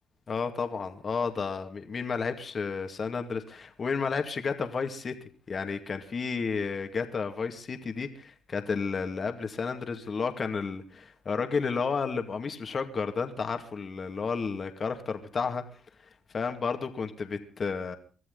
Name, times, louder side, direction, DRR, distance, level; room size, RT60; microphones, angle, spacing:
voice 1, 0.3-5.2 5.5-15.6 16.3-18.0, left 5 dB, 40° left, 6 dB, 2.3 m, -32 dB
24.0 x 13.5 x 4.0 m, 0.38 s
cardioid pair, 90°, 0 cm